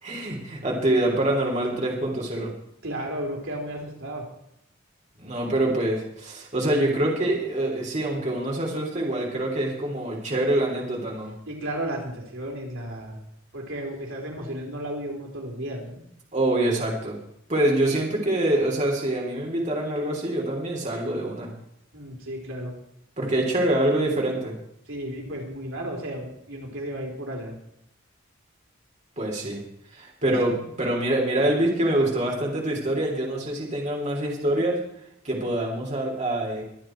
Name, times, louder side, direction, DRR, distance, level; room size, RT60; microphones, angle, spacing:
voice 1, 0.0-2.5 5.2-11.3 16.3-17.2 17.5-21.5 23.2-24.5 29.2-29.6 29.9-34.8 35.2-36.6, right 1 dB, 35° right, -2 dB, 3.4 m, -25 dB
voice 2, 2.8-4.2 11.5-13.2 13.5-16.0 21.9-22.7 24.9-27.6 30.2-30.3, right 1 dB, 80° right, 0 dB, 3.8 m, -33 dB
23.5 x 9.0 x 4.6 m, 0.76 s
head